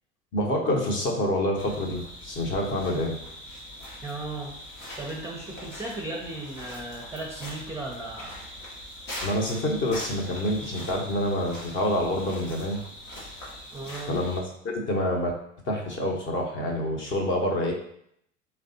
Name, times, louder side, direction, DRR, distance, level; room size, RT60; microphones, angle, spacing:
voice 1, 0.3-3.2 9.2-12.8 14.1-15.3 15.7-17.7, left 1 dB, 30° left, 1 dB, 1.0 m, -27 dB
sound 1, 1.5-14.4, left 1 dB, 80° left, 1.5 m, -41 dB
voice 2, 4.0-4.5 5.0-8.3 13.7-14.2, right 2 dB, 10° right, -2 dB, 0.6 m, -36 dB
4.3 x 3.3 x 2.7 m, 0.70 s
figure-of-eight pair, 75°, 37 cm